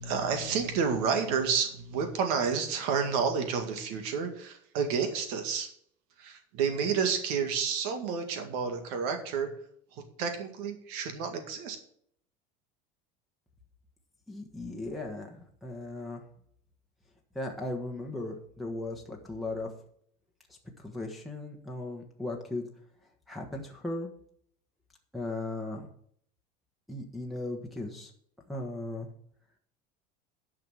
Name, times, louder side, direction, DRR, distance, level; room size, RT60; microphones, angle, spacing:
voice 1, 0.0-5.7 6.2-9.5 9.9-11.8, right 6 dB, 75° right, 6 dB, 2.0 m, -30 dB
voice 2, 14.3-15.3 15.6-16.2 17.3-19.7 20.8-22.7 23.3-24.1 25.1-25.9 26.9-28.1 28.5-29.1, left 2 dB, ahead, -1 dB, 1.3 m, -37 dB
10.5 x 6.0 x 7.8 m, 0.65 s
cardioid pair, 155°, 19 cm